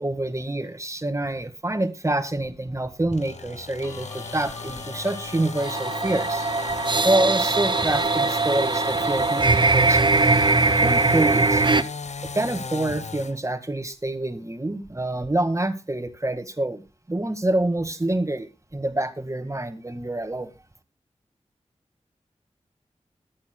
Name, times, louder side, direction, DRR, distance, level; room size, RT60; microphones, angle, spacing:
voice 1, 0.0-6.5 7.0-10.2 10.7-11.6 12.3-16.8 17.1-18.5 18.7-20.5, right 1 dB, 25° right, 10 dB, 1.8 m, -26 dB
sound 1, 3.1-13.4, left 4 dB, 70° left, 0.8 m, -36 dB
Guitar, 3.8-9.7, left 2 dB, 25° left, 2.8 m, -42 dB
sound 2, 5.6-11.8, right 3 dB, 40° right, 0.8 m, -21 dB
20.5 x 8.8 x 2.3 m, 0.28 s
cardioid pair, 45°, 12 cm